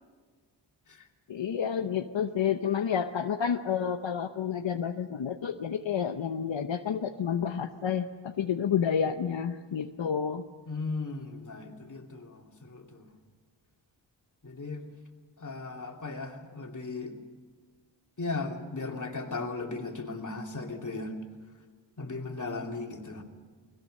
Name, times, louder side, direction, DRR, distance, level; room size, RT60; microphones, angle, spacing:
voice 1, 1.3-10.4, left 7 dB, 75° left, 6 dB, 0.9 m, -30 dB
voice 2, 10.7-13.0 14.4-14.9 15.4-17.2 18.2-21.1 22.0-23.2, left 3 dB, 40° left, 2 dB, 2.8 m, -37 dB
30.0 x 21.0 x 6.5 m, 1.5 s
wide cardioid pair, 110°, 45 cm